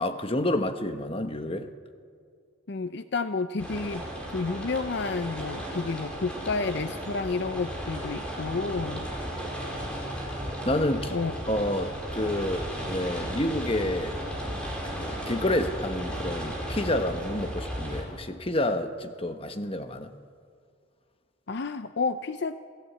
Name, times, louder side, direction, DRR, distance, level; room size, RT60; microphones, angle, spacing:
voice 1, 0.0-1.7 10.6-11.1 11.5-14.2 14.9-20.1, left 1 dB, 25° left, 8 dB, 1.1 m, -29 dB
voice 2, 2.7-4.0 4.3-9.1 11.1-11.4 21.5-22.6, left 4 dB, 55° left, 11 dB, 0.5 m, -30 dB
sound 1, 3.6-18.0, equal, 5° left, 4.5 m, -35 dB
26.5 x 15.5 x 8.4 m, 2.3 s
head